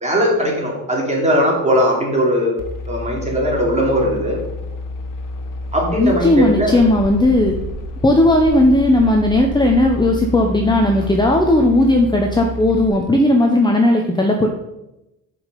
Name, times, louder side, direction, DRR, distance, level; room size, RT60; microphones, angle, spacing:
voice 1, 0.0-2.5 2.9-4.4 5.7-6.8, equal, 20° right, -2 dB, 2.9 m, -19 dB
sound 1, 2.6-12.9, left 1 dB, 60° left, 1.1 m, -29 dB
voice 2, 6.0-7.5 8.0-14.5, left 1 dB, 10° left, 2 dB, 0.9 m, -15 dB
6.9 x 5.3 x 6.8 m, 0.91 s
cardioid pair, 115°, 36 cm